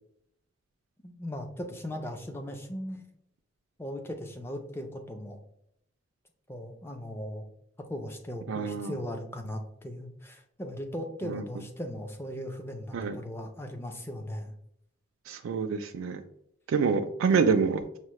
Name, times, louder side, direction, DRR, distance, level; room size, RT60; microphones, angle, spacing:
voice 1, 1.0-3.1 3.8-5.4 6.5-7.5 7.9-14.5, equal, 10° left, 4 dB, 0.4 m, -38 dB
voice 2, 8.5-8.9 11.2-11.4 12.9-13.2 15.3-16.2 16.7-17.8, right 5 dB, 80° right, 6 dB, 0.3 m, -26 dB
5.4 x 2.1 x 3.0 m, 0.74 s
head